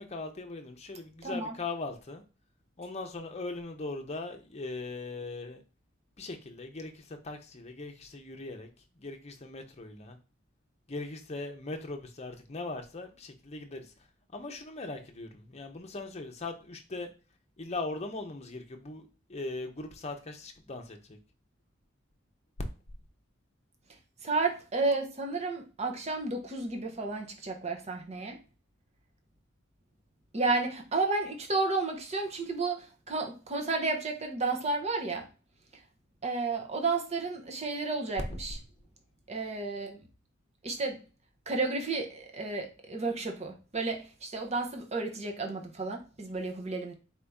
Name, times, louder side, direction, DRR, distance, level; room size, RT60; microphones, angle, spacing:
voice 1, 0.0-2.2 2.8-5.6 6.2-8.7 9.0-10.2 10.9-13.9 14.3-17.1 17.6-21.2, left 3 dB, 35° left, 0.7 m, -40 dB
voice 2, 1.2-1.5 24.2-28.4 30.3-35.3 36.2-38.6 39.3-40.0 40.6-41.0 41.5-46.9, right 3 dB, 35° right, 0.8 m, -32 dB
4.3 x 2.8 x 3.5 m
head